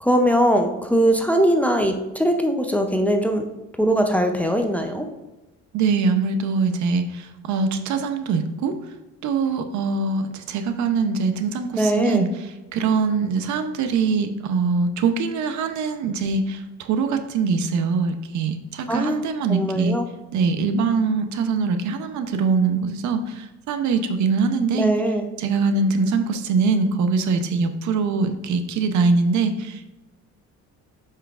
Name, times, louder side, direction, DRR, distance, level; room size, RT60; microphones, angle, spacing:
voice 1, 0.0-3.4 3.8-5.1 11.8-12.3 18.9-19.2 19.5-20.1 24.7-25.3, equal, 5° left, 4 dB, 0.5 m, -20 dB
voice 2, 5.7-8.7 9.2-12.3 12.7-20.0 20.3-24.9 25.4-29.9, right 4 dB, 70° right, 8 dB, 0.7 m, -23 dB
8.1 x 5.7 x 2.4 m, 1.0 s
cardioid pair, 130°, 31 cm